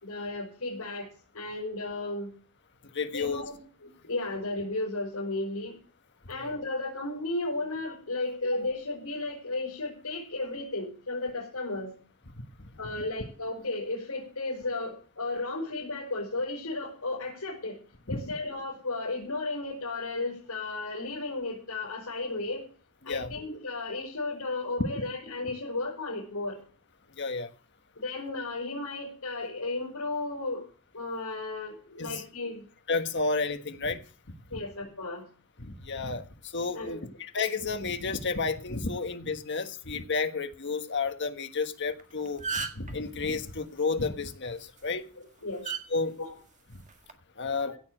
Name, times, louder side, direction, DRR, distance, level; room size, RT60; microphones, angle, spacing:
voice 1, 0.0-1.1 1.3-2.3 3.1-5.8 6.3-11.9 12.8-17.8 18.1-22.6 23.0-26.6 28.0-30.6 30.9-32.6 34.5-35.3 36.7-37.1 45.4-45.6 46.2-46.3 47.7-47.8, left 2 dB, 85° left, 5.4 m, -34 dB
voice 2, 2.9-3.5 6.3-6.4 12.9-13.0 18.1-18.2 23.0-23.3 27.2-27.5 32.0-32.2 32.9-34.0 35.6-36.3 36.5-42.4 42.7-45.0 45.9-46.1 46.7-46.8 47.4-47.7, left 4 dB, 55° left, 1.5 m, -31 dB
sound 1, 41.9-42.0 42.3-42.9 44.6-44.8 45.6-45.8 46.9-47.1, right 5 dB, 35° right, 1.7 m, -33 dB
16.5 x 7.0 x 7.7 m
head